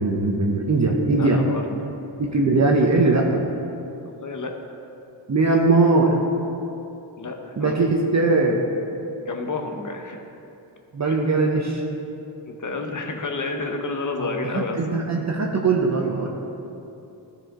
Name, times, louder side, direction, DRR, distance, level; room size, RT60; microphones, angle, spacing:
voice 1, 0.0-1.4 2.2-3.4 5.3-6.1 7.6-8.6 10.9-11.8 14.2-16.3, right 3 dB, 35° right, -1 dB, 0.9 m, -20 dB
voice 2, 1.1-1.8 4.0-4.6 7.2-7.7 9.2-10.3 11.1-11.2 12.5-14.8, left 3 dB, 40° left, 4 dB, 1.0 m, -30 dB
13.0 x 5.0 x 3.7 m, 2.8 s
cardioid pair, 60°, 48 cm